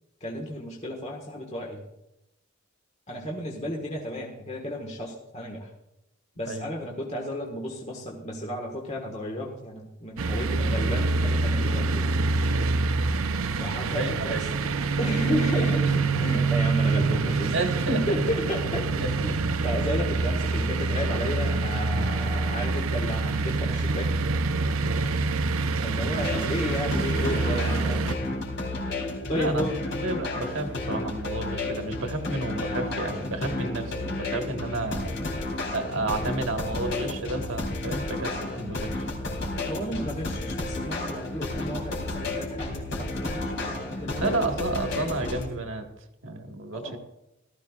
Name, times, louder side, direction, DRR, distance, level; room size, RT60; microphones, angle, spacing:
voice 1, 0.2-1.8 3.1-5.7 6.4-12.1 13.6-14.4 15.0-17.5 17.9-19.4 19.6-24.1 25.8-28.1 29.3-29.7 39.6-44.6 46.7-47.0, equal, 35° left, -1 dB, 1.6 m, -33 dB
sound 1, 10.2-28.2, right 3 dB, 90° right, 0.7 m, -26 dB
voice 2, 12.5-13.1 13.9-15.0 16.3-16.4 17.5-18.0 19.0-19.1 24.8-25.2 29.3-35.2 35.7-38.9 44.2-45.9 46.2-47.0, right 2 dB, 70° right, 4 dB, 1.6 m, -31 dB
sound 2, 26.1-45.5, left 2 dB, 60° left, 3.5 m, -32 dB
18.0 x 13.5 x 2.4 m, 0.89 s
head